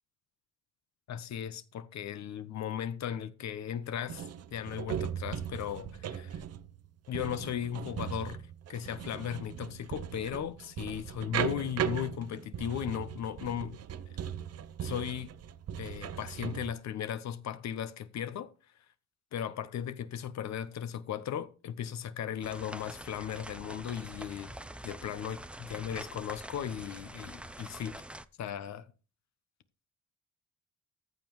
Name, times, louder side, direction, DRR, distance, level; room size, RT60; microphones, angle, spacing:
voice 1, 1.1-6.4 7.1-8.4 8.7-13.8 14.8-15.3 15.8-18.5 19.3-24.5 24.8-28.0 28.4-28.8, left 9 dB, 65° left, 0.9 m, -37 dB
sound 1, 4.1-16.7, right 9 dB, 55° right, 0.7 m, -38 dB
sound 2, 22.4-28.2, right 1 dB, 5° right, 0.5 m, -45 dB
14.5 x 7.2 x 3.1 m
cardioid pair, 90°, 30 cm